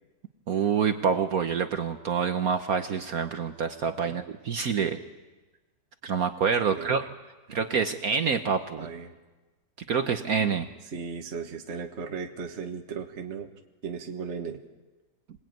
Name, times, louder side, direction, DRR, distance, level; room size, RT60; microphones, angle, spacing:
voice 1, 0.5-5.0 6.0-7.0 7.5-8.9 9.9-10.7, right 6 dB, 55° right, 7 dB, 1.4 m, -27 dB
voice 2, 6.7-7.1 8.8-9.1 10.9-13.5 13.8-14.6, right 5 dB, 40° right, 4 dB, 1.6 m, -36 dB
26.5 x 19.5 x 9.2 m, 1.2 s
omnidirectional pair, 1.9 m